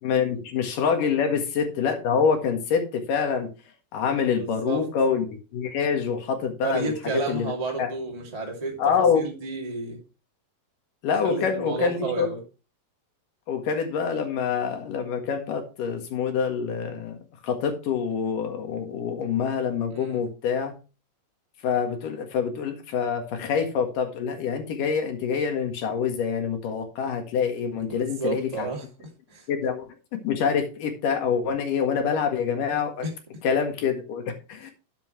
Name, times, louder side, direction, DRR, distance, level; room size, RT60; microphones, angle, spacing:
voice 1, 0.0-3.5 3.9-5.2 5.5-6.9 7.3-7.5 7.8-7.9 8.8-9.3 11.0-12.3 13.5-17.2 17.4-20.7 21.6-28.7 29.5-33.1 33.4-34.7, left 6 dB, 60° left, 6 dB, 3.1 m, -26 dB
voice 2, 4.3-4.8 6.6-10.0 11.2-12.4 19.9-20.2 27.9-28.8 29.3-29.5 33.0-33.1, right 3 dB, 15° right, -1 dB, 1.8 m, -31 dB
12.0 x 7.9 x 3.2 m, 0.31 s
omnidirectional pair, 4.6 m